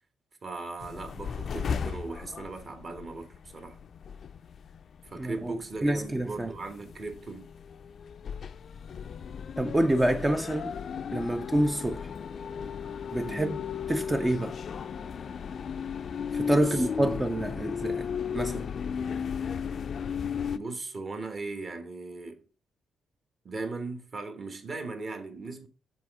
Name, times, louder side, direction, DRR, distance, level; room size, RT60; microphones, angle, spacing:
voice 1, 0.4-3.8 5.0-7.5 13.2-13.6 16.5-17.1 20.5-22.4 23.4-25.7, right 3 dB, 40° right, 1.2 m, -38 dB
sound 1, 0.8-20.6, left 7 dB, 55° left, 0.4 m, -36 dB
voice 2, 5.2-5.5 5.8-6.5 9.6-10.8 11.1-12.1 13.1-13.6 13.9-14.6 16.3-18.1 18.3-18.7, right 1 dB, 15° right, 0.4 m, -27 dB
6.1 x 4.0 x 4.7 m
cardioid pair, 90°, 0 cm